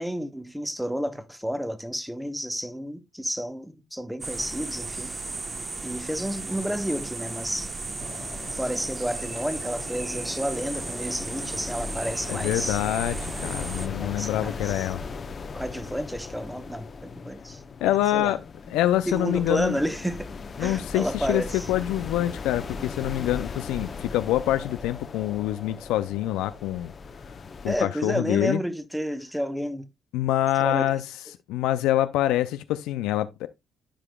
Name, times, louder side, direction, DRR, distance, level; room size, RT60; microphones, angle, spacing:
voice 1, 0.0-5.1 5.8-7.7 8.5-12.8 14.0-14.9 15.5-17.6 18.1-18.4 19.1-20.3 20.6-21.7 27.6-29.9 30.6-31.0, equal, 5° right, 1.1 m, -31 dB
sound 1, 4.2-13.9, right 3 dB, 30° right, 1.0 m, -35 dB
sound 2, 8.0-27.8, left 4 dB, 45° left, 0.9 m, -38 dB
voice 2, 12.3-15.0 17.8-18.4 18.7-19.8 20.6-26.9 27.6-28.6 30.1-31.0 31.5-33.5, left 14 dB, 90° left, 0.4 m, -26 dB
13.0 x 4.9 x 2.3 m
supercardioid pair, 65°, 0 cm